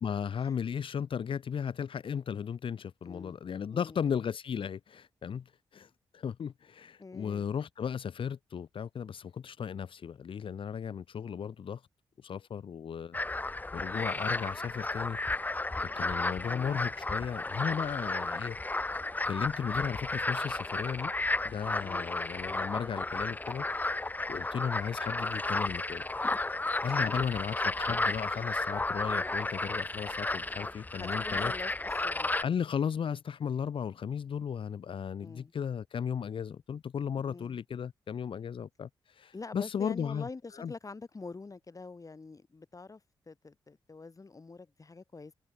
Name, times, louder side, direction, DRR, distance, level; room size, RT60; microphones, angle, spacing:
voice 1, 0.0-5.4 5.7-11.8 12.2-13.2 13.7-15.2 15.8-18.6 19.2-21.1 21.4-23.7 24.3-26.0 26.8-31.5 32.4-40.3 40.6-40.7, left 7 dB, 65° left, 1.6 m, -35 dB
voice 2, 3.0-3.4 3.7-4.2 7.0-7.6 21.8-22.1 26.9-27.3 31.0-32.4 35.2-35.5 37.3-37.6 39.3-43.0 43.3-45.3, left 3 dB, 35° left, 3.0 m, -46 dB
sound 1, 13.1-32.4, left 2 dB, 15° left, 0.6 m, -33 dB
supercardioid pair, 50°, 10 cm